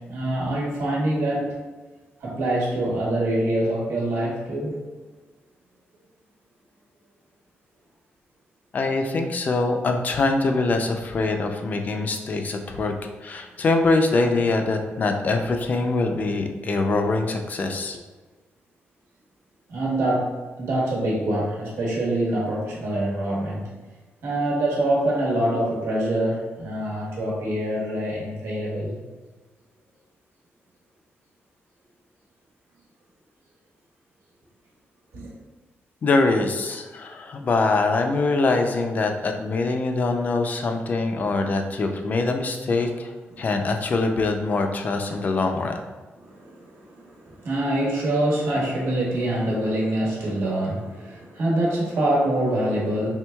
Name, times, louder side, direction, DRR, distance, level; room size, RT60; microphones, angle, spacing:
voice 1, 0.0-1.6 2.2-4.9 19.7-23.7 24.2-29.0 35.1-35.3 43.3-43.5 45.1-45.2 46.2-53.1, right 1 dB, 90° right, -4 dB, 1.2 m, -25 dB
voice 2, 8.7-12.9 13.2-18.0 36.0-45.8, left 3 dB, 40° left, 4 dB, 0.4 m, -23 dB
4.5 x 3.3 x 2.3 m, 1.3 s
wide cardioid pair, 180°, 4 cm